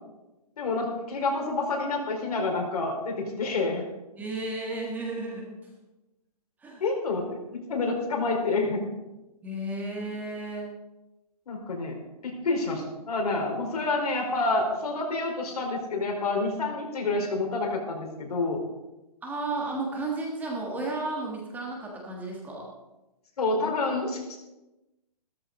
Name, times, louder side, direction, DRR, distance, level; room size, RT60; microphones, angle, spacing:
voice 1, 0.6-3.8 6.8-8.8 11.5-12.0 12.2-18.6 23.4-24.4, left 3 dB, 65° left, 1 dB, 4.8 m, -28 dB
voice 2, 4.2-5.5 6.6-6.8 9.4-10.7 19.2-22.7, right 2 dB, 10° right, -2 dB, 1.6 m, -33 dB
15.5 x 13.5 x 4.0 m, 1.0 s
hypercardioid pair, 160°, 21 cm